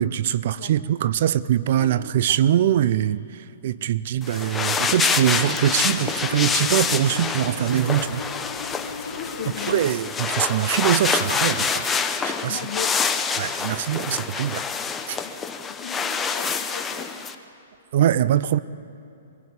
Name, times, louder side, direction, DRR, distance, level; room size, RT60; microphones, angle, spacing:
voice 1, 0.0-3.2 3.6-8.2 9.7-11.9 12.2-12.6 13.4-14.6 15.1-15.2 17.9-18.6, right 11 dB, 60° right, 17 dB, 0.6 m, -22 dB
voice 2, 1.7-2.4 9.1-9.8 12.5-12.9 15.2-15.3 15.6-17.3, left 8 dB, 50° left, 4 dB, 2.0 m, -37 dB
sound 1, 4.2-17.3, left 5 dB, 15° left, 1.0 m, -26 dB
sound 2, 4.9-9.9, left 4 dB, 90° left, 1.4 m, -37 dB
24.0 x 16.0 x 8.5 m, 2.7 s
hypercardioid pair, 130°, 0 cm